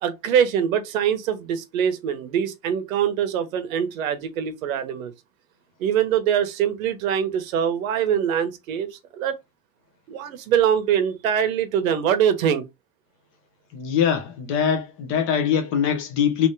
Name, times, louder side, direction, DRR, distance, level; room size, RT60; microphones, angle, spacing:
voice 1, 0.0-5.1 5.8-9.3 10.1-12.6, right 8 dB, 90° right, 1.1 m, -23 dB
voice 2, 13.7-16.5, left 8 dB, 30° left, 0.9 m, -22 dB
3.5 x 2.7 x 3.2 m
supercardioid pair, 165°, 40 cm